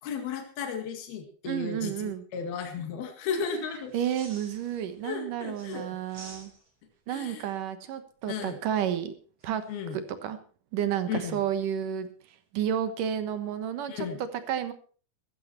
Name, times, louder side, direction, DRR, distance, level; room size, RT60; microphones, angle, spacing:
voice 1, 0.0-3.9 5.0-5.9 7.1-7.5 8.3-8.6 9.7-10.0 11.1-11.4 13.9-14.2, left 6 dB, 80° left, 5 dB, 3.9 m, -34 dB
voice 2, 1.4-2.2 3.9-6.5 7.1-9.1 9.4-9.6 9.9-10.4 10.7-12.1 12.5-14.7, right 9 dB, 70° right, 11 dB, 2.7 m, -31 dB
sound 1, 3.8-5.1 5.5-6.9 9.4-9.8, right 3 dB, 40° right, 5.5 m, -50 dB
16.5 x 13.5 x 4.4 m, 0.40 s
omnidirectional pair, 4.3 m